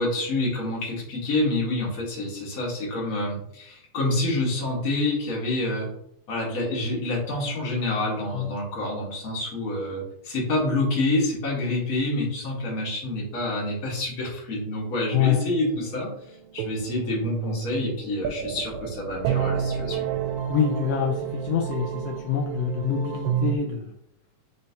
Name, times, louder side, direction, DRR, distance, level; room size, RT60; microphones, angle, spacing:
voice 1, 0.0-5.9 6.3-16.1 16.5-20.1, left 2 dB, 40° left, -4 dB, 1.4 m, -27 dB
sound 1, 15.5-23.6, right 8 dB, 80° right, 1.8 m, -30 dB
voice 2, 20.5-23.9, left 8 dB, 85° left, 2 dB, 1.4 m, -25 dB
4.4 x 4.3 x 2.7 m, 0.73 s
omnidirectional pair, 3.4 m